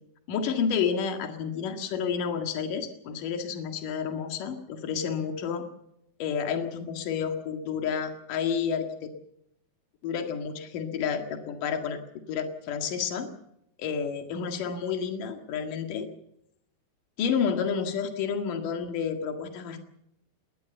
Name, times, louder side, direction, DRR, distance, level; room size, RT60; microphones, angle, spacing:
voice 1, 0.3-5.7 6.2-9.1 10.0-12.0 12.3-13.3 13.8-16.1 17.2-19.8, left 6 dB, 65° left, 5 dB, 3.4 m, -30 dB
21.5 x 19.5 x 7.0 m, 0.78 s
omnidirectional pair, 4.2 m